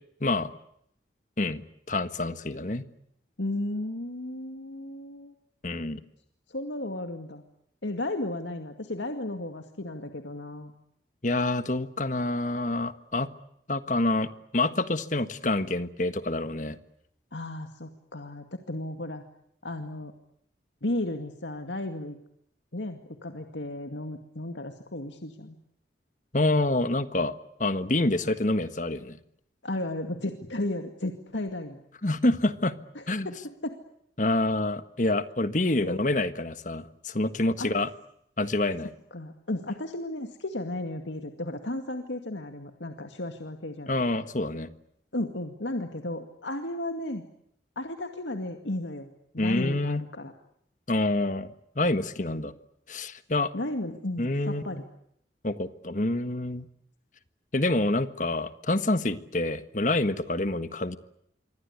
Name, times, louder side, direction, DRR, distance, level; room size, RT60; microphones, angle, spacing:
voice 1, 0.2-0.5 1.4-1.6 1.9-2.8 5.6-6.0 11.2-13.3 13.7-16.8 26.3-29.2 32.0-32.8 33.1-33.3 34.2-37.9 38.4-38.9 43.9-44.7 49.4-50.0 50.9-51.5 51.7-52.5 52.9-53.5 54.2-54.8 55.4-56.6 57.5-61.0, left 2 dB, 45° left, 12 dB, 1.5 m, -27 dB
voice 2, 3.4-5.3 6.5-7.4 7.8-10.7 17.3-19.2 19.6-20.1 20.8-22.2 22.7-25.6 29.6-31.8 33.0-33.8 35.8-36.0 37.6-37.7 39.1-44.0 45.1-47.2 47.8-49.1 49.3-50.3 52.3-52.4 53.5-54.8, left 1 dB, 85° left, 6 dB, 2.2 m, -34 dB
27.0 x 24.0 x 8.3 m, 0.74 s
head